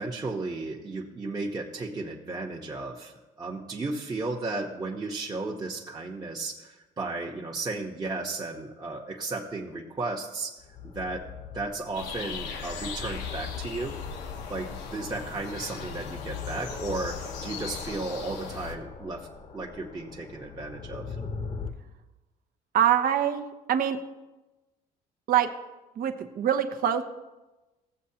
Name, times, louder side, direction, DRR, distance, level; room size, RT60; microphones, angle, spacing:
voice 1, 0.0-10.5 10.8-11.3 11.5-14.0 14.5-19.3 19.5-21.2, right 3 dB, 25° right, -3 dB, 1.1 m, -34 dB
sound 1, 10.6-21.7, left 5 dB, 40° left, 0.9 m, -40 dB
sound 2, 11.9-18.8, left 6 dB, 85° left, 1.1 m, -39 dB
voice 2, 22.7-24.0 25.3-25.5 26.0-27.0, right 10 dB, 60° right, 7 dB, 0.9 m, -24 dB
16.5 x 7.6 x 2.8 m, 1.1 s
cardioid pair, 110°, 17 cm